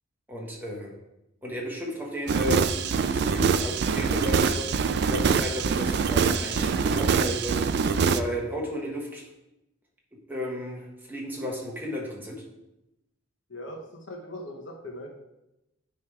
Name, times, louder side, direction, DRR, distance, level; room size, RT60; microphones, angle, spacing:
voice 1, 0.3-0.9 1.4-4.8 5.1-7.7 8.1-9.2 10.3-12.4, equal, 10° right, -2 dB, 1.2 m, -33 dB
sound 1, 2.3-8.2, right 5 dB, 55° right, 0.3 m, -24 dB
voice 2, 13.5-13.8 14.1-15.1, left 1 dB, 60° left, 1 dB, 1.2 m, -39 dB
9.0 x 3.3 x 4.8 m, 0.92 s
head